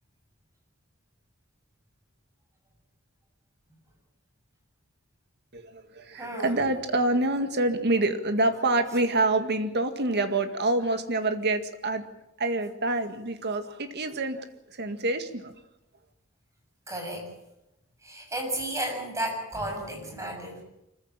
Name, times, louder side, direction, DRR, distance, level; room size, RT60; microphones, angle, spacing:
voice 1, 5.5-12.0 12.4-15.5, right 2 dB, 50° right, 7 dB, 2.0 m, -27 dB
voice 2, 6.1-6.7 16.9-17.3 18.0-20.6, right 1 dB, 15° right, 2 dB, 7.3 m, -33 dB
25.5 x 15.0 x 9.0 m, 0.88 s
head